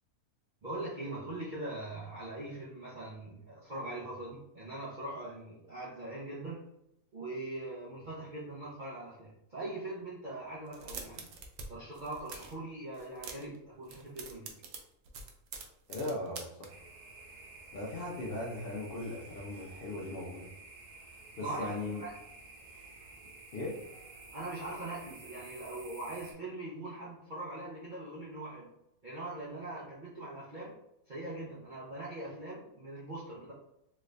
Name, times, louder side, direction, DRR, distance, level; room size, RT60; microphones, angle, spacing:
voice 1, 0.6-6.7 7.1-11.3 11.7-14.5 21.4-22.1 24.3-28.7 29.0-30.8 31.1-33.5, right 2 dB, 50° right, -7 dB, 0.6 m, -41 dB
sound 1, 10.7-11.7 11.9-12.6 12.9-13.6 13.8-16.7, right 5 dB, 70° right, 0.9 m, -45 dB
voice 2, 15.9-16.7 17.7-20.5 21.4-22.0 23.5-23.8, left 2 dB, 55° left, -4 dB, 0.6 m, -38 dB
sound 2, 16.7-26.3, right 3 dB, 85° right, 1.3 m, -52 dB
3.2 x 2.5 x 3.2 m, 0.82 s
omnidirectional pair, 1.6 m